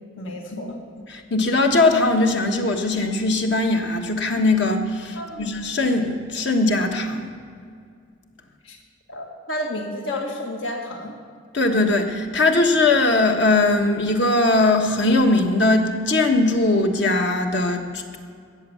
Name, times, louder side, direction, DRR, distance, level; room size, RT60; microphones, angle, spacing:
voice 1, 0.2-0.8 5.2-5.5 8.6-8.8 9.1-11.1, left 1 dB, 80° left, 1 dB, 1.8 m, -31 dB
voice 2, 1.1-7.3 11.5-18.2, left 2 dB, 60° left, 4 dB, 1.4 m, -20 dB
13.5 x 8.5 x 7.1 m, 2.2 s
head